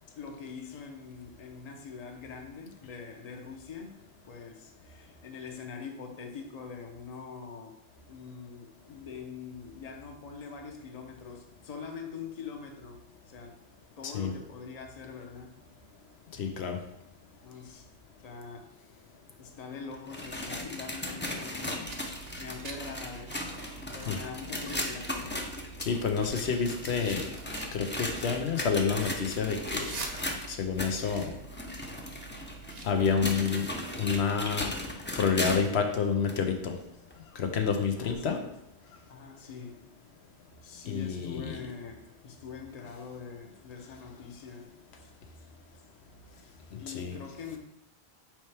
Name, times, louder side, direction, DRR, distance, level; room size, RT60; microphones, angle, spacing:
voice 1, 0.2-4.0 4.3-7.8 8.1-13.6 14.0-15.6 17.4-17.9 18.2-18.7 19.4-21.8 22.4-23.6 23.9-25.5 38.0-38.5 39.1-39.8 40.6-44.7 45.0-45.1 46.8-47.6, left 5 dB, 40° left, 3 dB, 0.8 m, -43 dB
voice 2, 16.4-16.8 24.1-24.2 25.8-27.3 27.7-30.0 30.5-31.3 32.8-33.7 34.0-34.7 35.1-36.8 37.3-38.4 40.9-41.6 46.7-47.2, left 6 dB, 90° left, 4 dB, 1.0 m, -29 dB
sound 1, 19.9-35.8 36.3-36.4 37.1-37.2 38.1-38.2, left 1 dB, 15° left, 0.5 m, -37 dB
sound 2, 21.9-33.2, right 4 dB, 45° right, 0.7 m, -46 dB
6.2 x 4.4 x 3.4 m, 0.84 s
omnidirectional pair, 1.1 m